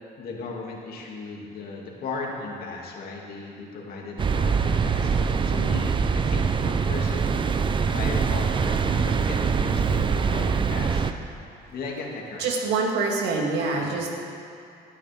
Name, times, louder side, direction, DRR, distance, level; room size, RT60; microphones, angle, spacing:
voice 1, 0.2-7.2 7.8-11.1 11.7-12.7 13.7-14.1, left 3 dB, 65° left, -2 dB, 2.5 m, -37 dB
sound 1, 4.2-11.1, right 5 dB, 30° right, 0.6 m, -23 dB
voice 2, 12.4-14.2, right 4 dB, 85° right, -1 dB, 2.2 m, -25 dB
18.0 x 11.5 x 3.6 m, 2.5 s
cardioid pair, 110°, 17 cm